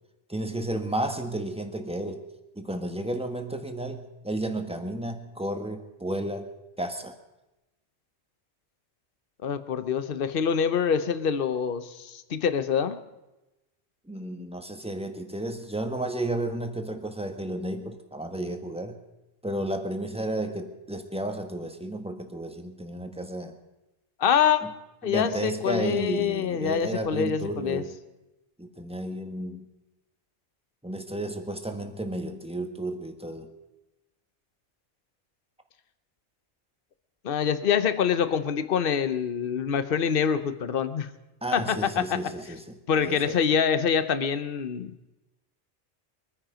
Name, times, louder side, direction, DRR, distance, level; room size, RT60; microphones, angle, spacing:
voice 1, 0.3-2.2 2.5-6.5 6.8-7.2 14.1-19.0 19.4-23.5 24.6-24.7 25.0-27.9 28.6-29.6 30.8-33.5 41.4-43.5, right 1 dB, 5° right, 6 dB, 1.4 m, -32 dB
voice 2, 9.4-13.0 24.2-24.6 25.0-27.8 37.2-41.1 41.5-42.0 42.9-44.9, left 7 dB, 55° left, 12 dB, 1.1 m, -25 dB
23.5 x 9.9 x 5.1 m, 0.98 s
omnidirectional pair, 1.2 m